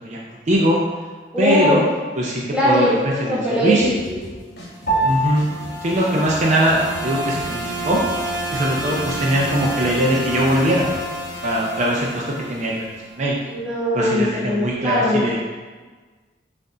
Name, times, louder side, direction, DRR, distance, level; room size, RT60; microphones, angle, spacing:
voice 1, 0.0-0.8 1.4-1.8 2.2-3.9 5.0-5.5 5.8-8.0 8.5-10.9 11.4-12.2 12.5-12.9 13.2-13.4 13.9-15.4, right 1 dB, 40° right, -3 dB, 0.5 m, -21 dB
voice 2, 1.3-1.8 2.5-4.2 6.1-6.2 13.5-15.2, left 1 dB, 5° right, -7 dB, 1.1 m, -21 dB
sound 1, 3.8-11.0, equal, 70° left, 1.3 m, -39 dB
Piano, 4.9-14.5, right 1 dB, 50° left, 1.1 m, -31 dB
sound 2, 4.9-13.1, right 1 dB, 20° left, 0.6 m, -30 dB
5.4 x 2.6 x 3.7 m, 1.4 s
head